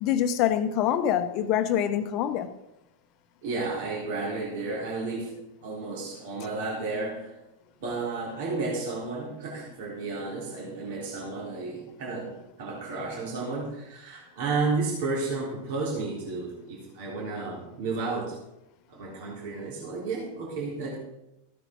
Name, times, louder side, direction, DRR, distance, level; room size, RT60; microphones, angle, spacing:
voice 1, 0.0-2.5, left 10 dB, 40° left, 1.0 m, -25 dB
voice 2, 3.4-5.3 5.6-7.3 7.8-12.3 12.6-18.4 18.9-21.0, right 3 dB, 50° right, 3.9 m, -32 dB
15.5 x 9.2 x 3.9 m
figure-of-eight pair, 90°, 0 cm